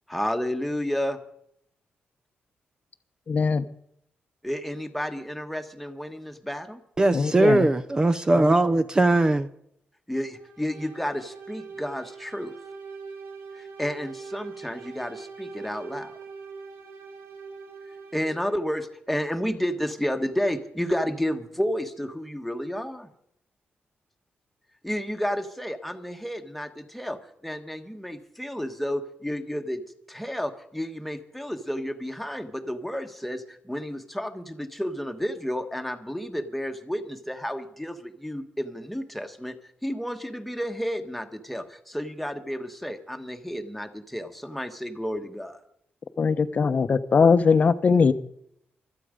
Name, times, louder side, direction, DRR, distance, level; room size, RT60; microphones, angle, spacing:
voice 1, 0.1-1.2 4.4-6.8 10.1-12.5 13.5-16.1 18.1-23.1 24.8-29.8 30.1-39.5 39.8-45.6, equal, ahead, 1.3 m, -31 dB
voice 2, 3.3-3.7 7.1-7.7 46.2-48.1, left 5 dB, 40° left, 0.8 m, -20 dB
voice 3, 7.0-9.5, right 2 dB, 20° right, 0.6 m, -20 dB
sound 1, 10.4-18.7, right 5 dB, 70° right, 2.6 m, -42 dB
25.0 x 8.6 x 5.1 m
wide cardioid pair, 140°, 4 cm